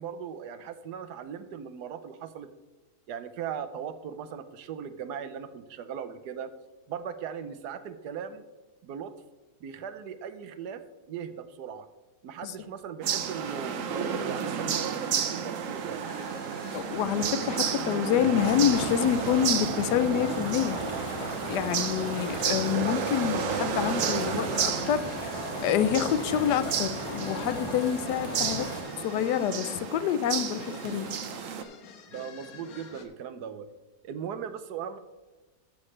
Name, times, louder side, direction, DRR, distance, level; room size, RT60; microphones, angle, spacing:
voice 1, 0.0-2.5 3.1-6.5 6.9-8.4 8.8-9.1 9.6-11.9 12.2-13.8 14.2-16.1 32.1-33.7 34.0-35.0, right 8 dB, 75° right, 11 dB, 1.3 m, -38 dB
sound 1, 13.0-31.6, right 7 dB, 60° right, 1.0 m, -32 dB
sound 2, 16.1-33.1, left 5 dB, 65° left, 1.4 m, -50 dB
voice 2, 16.7-20.8 21.0-28.7 29.0-31.1, left 9 dB, 80° left, 13 dB, 1.2 m, -27 dB
sound 3, 18.4-28.8, equal, 20° left, 1.7 m, -37 dB
13.5 x 7.1 x 3.2 m, 1.2 s
omnidirectional pair, 1.8 m